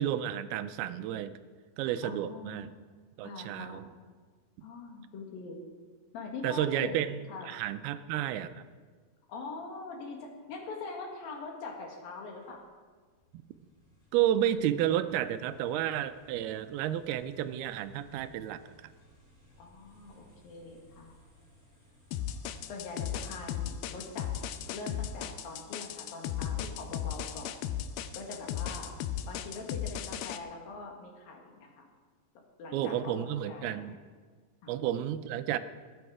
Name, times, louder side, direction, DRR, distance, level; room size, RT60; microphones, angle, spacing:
voice 1, 0.0-1.4 1.8-2.7 3.2-3.9 6.4-8.7 14.1-18.8 32.7-34.0 34.7-35.6, right 11 dB, 85° right, 11 dB, 2.6 m, -31 dB
voice 2, 2.0-2.8 3.2-3.9 4.6-5.6 6.1-7.0 7.3-7.5 9.3-12.7 19.6-21.2 22.7-24.4 24.7-27.6 28.1-28.9 29.3-31.9 32.4-33.8 34.6-34.7, left 3 dB, 70° left, 1 dB, 3.5 m, -43 dB
sound 1, 12.4-25.1, equal, 30° left, 6.3 m, -62 dB
sound 2, 22.1-30.4, left 10 dB, 90° left, 2.6 m, -36 dB
21.5 x 9.4 x 4.8 m, 1.5 s
omnidirectional pair, 4.4 m